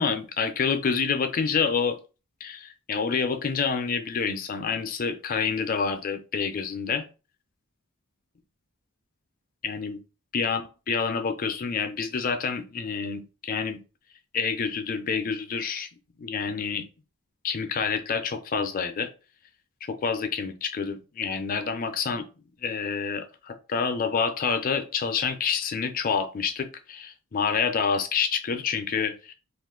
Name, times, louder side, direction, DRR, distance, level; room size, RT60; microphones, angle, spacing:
voice 1, 0.0-2.0 2.4-7.1 9.6-10.0 10.3-13.8 14.3-15.9 16.2-16.9 17.4-19.1 19.9-22.2 22.6-29.3, left 5 dB, 40° left, 7 dB, 0.4 m, -28 dB
2.5 x 2.4 x 3.6 m, 0.33 s
head